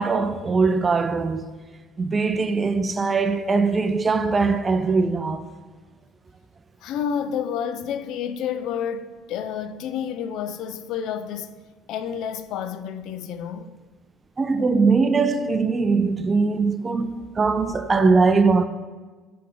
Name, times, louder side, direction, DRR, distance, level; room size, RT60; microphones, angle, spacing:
voice 1, 0.0-1.6 2.0-5.5 14.4-18.6, right 4 dB, 30° right, 0.4 m, -21 dB
voice 2, 6.8-11.5 11.9-13.7, left 8 dB, 65° left, 0.3 m, -29 dB
7.6 x 3.3 x 3.9 m
hypercardioid pair, 75°, 0 cm